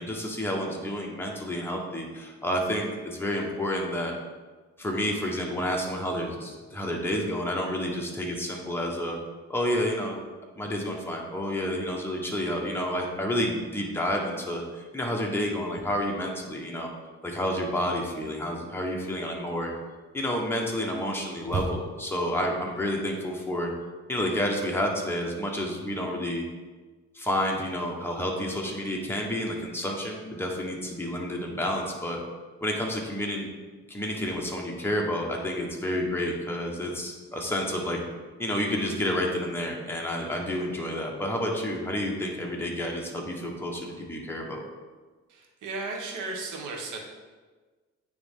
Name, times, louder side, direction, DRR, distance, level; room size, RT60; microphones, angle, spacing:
voice 1, 0.0-4.1 4.8-9.2 9.5-10.2 10.5-16.9 17.2-19.7 20.1-23.7 24.1-26.4 27.1-32.2 32.6-33.5 33.9-38.0 38.4-44.6, equal, 10° left, -1 dB, 1.2 m, -30 dB
sound 1, 15.5-16.8 17.1-22.2, right 3 dB, 25° right, 0.9 m, -39 dB
voice 2, 45.3-47.0, right 3 dB, 80° right, 0 dB, 1.3 m, -35 dB
9.3 x 3.3 x 3.6 m, 1.3 s
cardioid pair, 90°, 30 cm